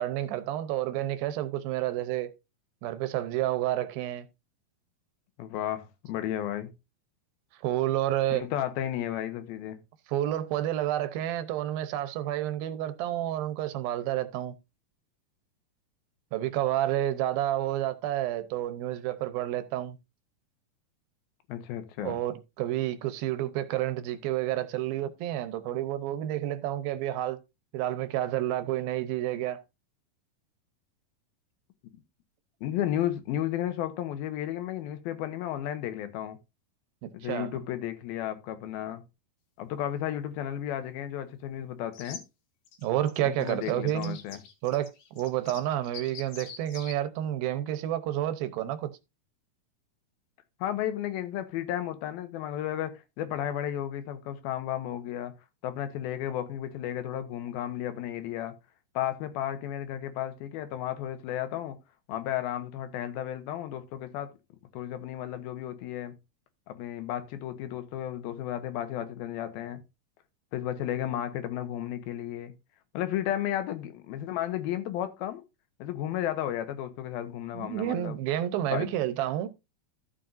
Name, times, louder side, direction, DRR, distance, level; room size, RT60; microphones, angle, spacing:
voice 1, 0.0-2.3 2.8-4.3 7.6-8.4 10.1-14.6 16.3-20.0 22.0-27.4 27.7-29.6 37.0-37.5 42.8-44.2 44.6-48.9 77.5-79.5, right 13 dB, 85° right, 2.7 m, -30 dB
voice 2, 5.4-6.7 8.3-9.8 21.5-22.2 32.6-36.4 37.1-39.0 39.6-42.2 43.2-44.4 50.6-55.3 55.6-58.6 58.9-61.8 62.1-64.3 64.7-66.1 66.7-69.8 70.5-72.5 72.9-75.4 75.8-78.2 78.7-78.9, left 11 dB, 90° left, 2.9 m, -33 dB
sound 1, 41.9-42.2 42.6-46.9, left 6 dB, 65° left, 2.8 m, -45 dB
13.5 x 7.5 x 2.6 m
omnidirectional pair, 4.2 m